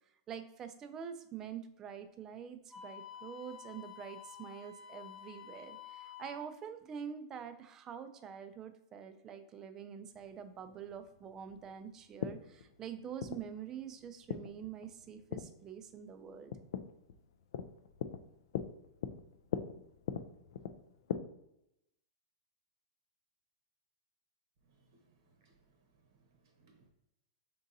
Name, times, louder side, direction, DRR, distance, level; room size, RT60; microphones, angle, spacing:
voice 1, 0.3-16.5, right 8 dB, 20° right, 8 dB, 0.3 m, -46 dB
Wind instrument woodwind instrument, 2.7-6.4, left 8 dB, 10° left, 1.1 m, -50 dB
sound 1, 10.1-21.2, left 8 dB, 70° left, 0.3 m, -42 dB
voice 2, 24.7-25.8 26.1-26.9, right 3 dB, 60° right, 3 dB, 0.8 m, -69 dB
3.9 x 3.7 x 2.6 m, 0.84 s
supercardioid pair, 155°, 2 cm